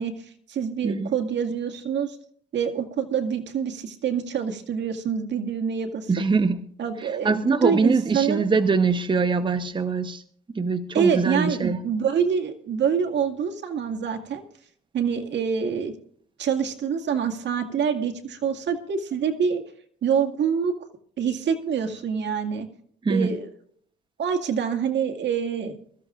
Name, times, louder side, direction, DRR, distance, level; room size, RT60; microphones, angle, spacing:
voice 1, 0.0-2.2 2.5-6.1 6.8-8.4 10.9-14.4 14.9-15.9 16.4-19.6 20.0-20.7 21.2-22.7 23.1-23.5 24.2-25.8, right 7 dB, 65° right, 4 dB, 2.1 m, -26 dB
voice 2, 6.1-6.7 7.0-10.2 10.5-11.8 23.0-23.4, right 4 dB, 25° right, 9 dB, 0.9 m, -23 dB
23.0 x 14.5 x 2.5 m, 0.62 s
cardioid pair, 90°, 20 cm